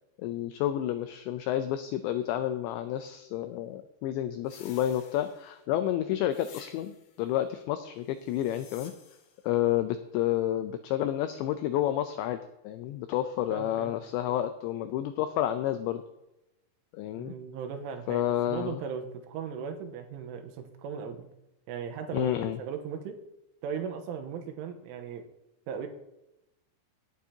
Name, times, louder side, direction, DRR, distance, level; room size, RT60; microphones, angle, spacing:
voice 1, 0.2-8.9 9.4-16.0 16.9-17.4 18.1-18.8 22.1-22.6, left 12 dB, 85° left, 9 dB, 2.5 m, -30 dB
sound 1, 4.5-5.7 6.3-7.2 8.2-9.4, left 7 dB, 65° left, 3.5 m, -53 dB
voice 2, 13.5-13.9 17.2-21.3 21.7-23.2 23.6-25.2 25.7-25.9, right 7 dB, 80° right, 5 dB, 3.4 m, -37 dB
18.0 x 9.4 x 2.8 m, 0.90 s
omnidirectional pair, 5.8 m